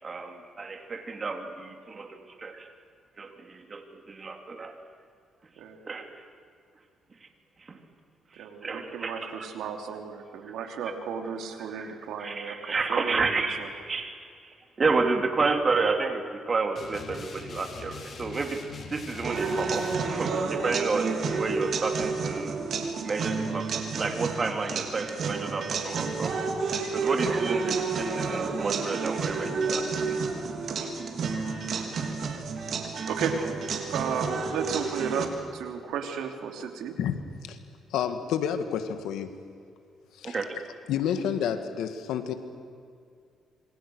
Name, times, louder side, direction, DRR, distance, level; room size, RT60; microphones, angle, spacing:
voice 1, 0.0-2.7 3.2-4.8 5.8-6.2 7.6-7.8 8.3-9.5 10.5-10.6 11.8-11.9 12.2-14.3 14.8-18.6 18.9-22.6 23.0-26.3 26.9-30.2 30.8-30.9 40.2-40.6, right 4 dB, 35° right, 5 dB, 3.4 m, -31 dB
voice 2, 8.4-13.7 26.9-27.2 33.1-33.4 33.9-36.9, right 7 dB, 85° right, 5 dB, 3.0 m, -34 dB
sound 1, 16.7-20.0, left 4 dB, 50° left, 4.5 m, -42 dB
sound 2, 19.2-35.3, right 4 dB, 60° right, 3.5 m, -30 dB
voice 3, 37.9-39.3 40.2-40.4 40.9-42.3, left 8 dB, 85° left, 9 dB, 2.1 m, -29 dB
27.0 x 25.5 x 6.5 m, 2.4 s
cardioid pair, 90°, 0 cm